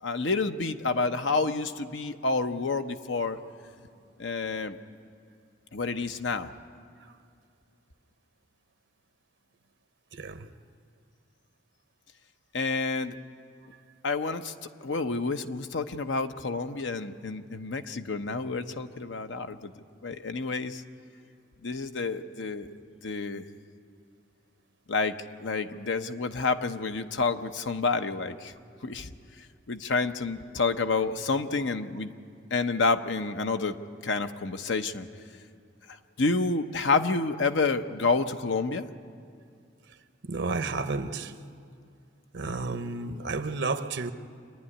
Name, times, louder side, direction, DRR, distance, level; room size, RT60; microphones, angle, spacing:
voice 1, 0.0-3.4 4.2-4.8 5.7-6.5 12.5-13.2 14.0-14.5 14.8-19.7 20.0-20.8 21.6-22.7 23.0-23.4 24.9-28.5 28.8-29.1 29.7-32.1 32.5-33.8 34.0-35.1 35.9-38.9, left 3 dB, 85° left, 0.8 m, -29 dB
voice 2, 10.1-10.5 40.2-41.4 42.3-44.1, right 3 dB, 80° right, 0.8 m, -32 dB
26.0 x 10.5 x 10.0 m
head